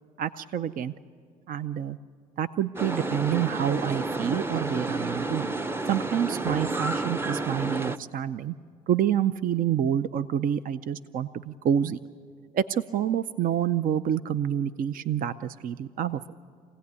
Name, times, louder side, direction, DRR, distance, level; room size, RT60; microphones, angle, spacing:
voice 1, 0.2-0.9 1.5-2.0 2.4-5.5 5.9-8.5 8.9-12.0 12.5-16.2, right 9 dB, 65° right, 13 dB, 0.6 m, -27 dB
sound 1, 2.8-8.0, right 2 dB, 15° right, 0.7 m, -30 dB
25.5 x 17.0 x 9.6 m, 2.2 s
cardioid pair, 90°, 16 cm